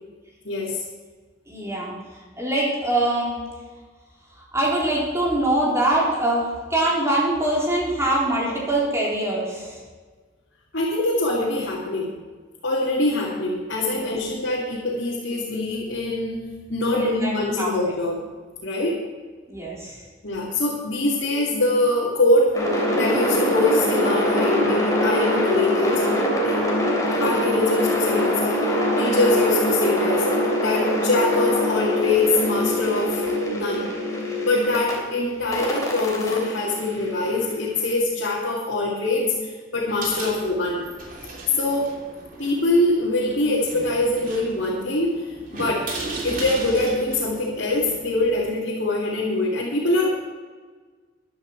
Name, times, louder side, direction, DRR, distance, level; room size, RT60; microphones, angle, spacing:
voice 1, 0.4-0.8 10.7-12.1 12.6-16.4 16.7-18.2 18.6-19.0 20.2-22.5 23.0-26.5 27.2-28.7 29.0-30.3 30.6-33.2 33.5-33.9 34.4-40.8 41.6-41.9 42.4-45.3 45.5-45.9 46.2-50.1, left 2 dB, 70° left, -6 dB, 2.6 m, -23 dB
voice 2, 1.5-1.9 2.4-3.4 4.5-9.8 13.9-14.1 16.9-17.7 19.5-20.0, right 1 dB, 15° right, -5 dB, 4.0 m, -23 dB
sound 1, 22.5-34.9 35.5-37.6, equal, 20° left, 3.4 m, -23 dB
sound 2, 39.7-48.5, right 2 dB, 45° right, 3.1 m, -36 dB
14.5 x 11.5 x 4.7 m, 1.4 s
head